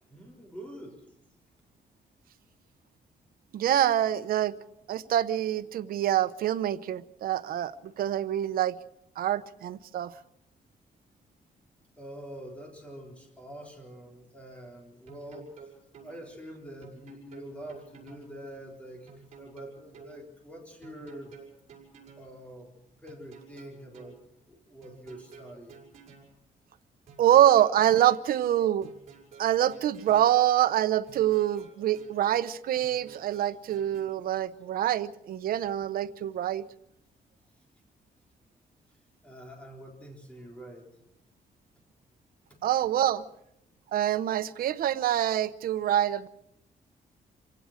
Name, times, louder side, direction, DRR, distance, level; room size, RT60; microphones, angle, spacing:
voice 1, 0.1-1.1 12.0-21.3 22.2-22.7 23.0-24.2 24.5-25.8 39.2-40.9, equal, 10° left, 3.9 m, -45 dB
voice 2, 3.5-4.5 4.9-7.7 8.0-8.8 9.2-10.1 27.2-28.9 29.4-36.6 42.6-43.2 43.9-46.3, right 11 dB, 85° right, 0.9 m, -25 dB
sound 1, 15.1-16.1 16.8-18.3 19.1-20.1 20.8-22.3 23.1-24.2 24.8-26.3 27.1-28.2 28.8-30.3 31.1-32.2 32.8-34.0, right 6 dB, 50° right, 6.0 m, -51 dB
27.0 x 16.5 x 6.5 m
wide cardioid pair, 175°, 15 cm